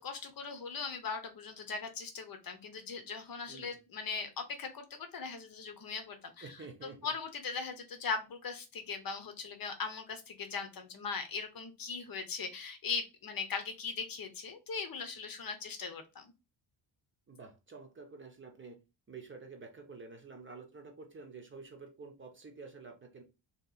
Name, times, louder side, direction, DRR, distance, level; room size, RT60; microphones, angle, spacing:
voice 1, 0.0-6.5 7.0-16.3, left 5 dB, 50° left, 7 dB, 0.8 m, -39 dB
voice 2, 6.4-7.1 17.3-18.8 19.1-23.2, right 4 dB, 25° right, 4 dB, 0.7 m, -49 dB
2.9 x 2.9 x 4.0 m, 0.27 s
wide cardioid pair, 170°, 45 cm